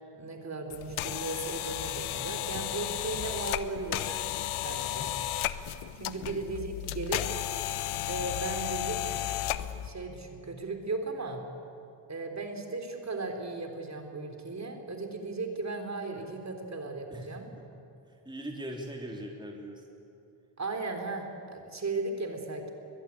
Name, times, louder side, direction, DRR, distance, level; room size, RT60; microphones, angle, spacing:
voice 1, 0.1-4.1 4.6-5.1 6.0-7.2 8.1-9.2 9.8-11.4 12.1-17.5 20.6-22.7, right 3 dB, 35° right, 4 dB, 3.8 m, -36 dB
sound 1, 0.7-9.9, left 13 dB, 75° left, 1.1 m, -34 dB
voice 2, 6.1-6.4 17.1-17.6 18.1-19.8, right 1 dB, 10° right, 1 dB, 3.2 m, -41 dB
21.5 x 21.5 x 8.5 m, 2.7 s
supercardioid pair, 70°, 50 cm